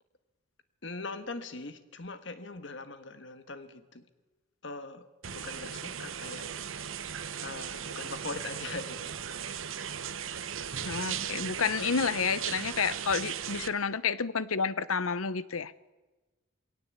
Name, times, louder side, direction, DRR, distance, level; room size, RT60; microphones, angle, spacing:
voice 1, 0.8-4.0 4.6-6.5 7.4-9.1, left 3 dB, 60° left, 11 dB, 1.5 m, -41 dB
sound 1, 5.2-13.7, right 8 dB, 75° right, 1.1 m, -37 dB
voice 2, 10.8-15.7, left 5 dB, 85° left, 17 dB, 0.9 m, -30 dB
22.0 x 17.5 x 8.3 m, 1.2 s
head